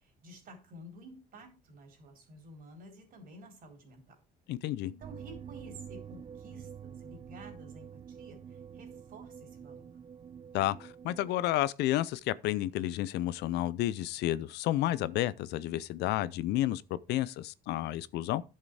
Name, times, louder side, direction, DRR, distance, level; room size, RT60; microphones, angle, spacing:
voice 1, 0.0-4.2 4.8-10.0, right 1 dB, 55° right, 4.2 m, -52 dB
voice 2, 4.5-4.9 10.5-18.4, left 14 dB, 80° left, 0.6 m, -31 dB
sound 1, 5.0-11.3, right 8 dB, 30° right, 0.4 m, -47 dB
11.0 x 6.6 x 4.8 m
cardioid pair, 110°, 17 cm